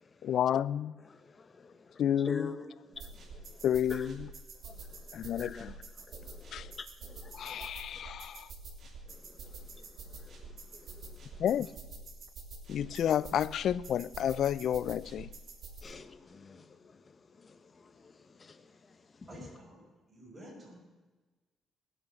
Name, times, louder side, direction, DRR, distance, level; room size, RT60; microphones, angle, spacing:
voice 1, 0.2-0.9 2.0-2.5 3.6-4.3 5.1-5.8 6.5-6.7 7.3-8.5 11.4-11.7 12.7-15.3, left 10 dB, 70° left, 0.4 m, -30 dB
voice 2, 1.2-2.7 3.3-3.6 3.9-4.1 4.6-4.9 5.4-5.7 6.1-8.0 9.1-10.4 10.7-11.2 15.8-17.0 17.4-18.6, left 4 dB, 35° left, 1.2 m, -45 dB
sound 1, 2.9-15.8, right 3 dB, 60° right, 2.7 m, -47 dB
voice 3, 19.3-19.8 20.1-20.8, right 1 dB, 30° right, 6.1 m, -50 dB
20.5 x 7.9 x 7.4 m
cardioid pair, 90°, 0 cm